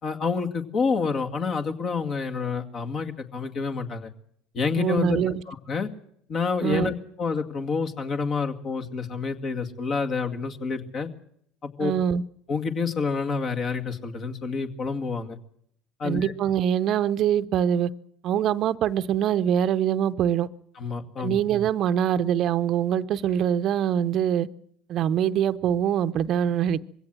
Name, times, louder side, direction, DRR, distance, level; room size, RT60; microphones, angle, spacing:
voice 1, 0.0-4.1 4.5-5.2 5.5-5.9 6.3-11.1 11.6-11.9 12.5-15.4 16.0-16.3 20.8-21.4, left 5 dB, 45° left, 2.2 m, -28 dB
voice 2, 4.8-5.4 6.6-6.9 11.8-12.2 16.0-17.9 18.2-20.5 21.2-24.5 24.9-26.8, right 9 dB, 50° right, 0.8 m, -24 dB
21.0 x 16.5 x 7.7 m
hypercardioid pair, 70°, 0 cm